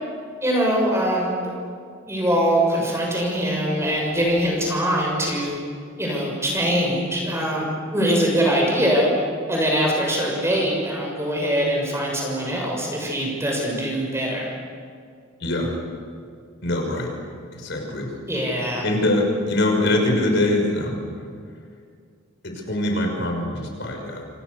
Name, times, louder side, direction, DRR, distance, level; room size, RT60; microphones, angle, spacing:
voice 1, 0.4-1.3 2.1-5.6 6.0-7.6 7.9-9.1 9.5-14.5 18.3-18.8, equal, 15° right, -1 dB, 6.5 m, -22 dB
voice 2, 15.4-15.7 16.6-17.1 17.5-18.1 18.8-21.0 22.4-24.2, left 1 dB, 55° left, 2 dB, 6.0 m, -23 dB
28.5 x 28.5 x 6.9 m, 2.2 s
head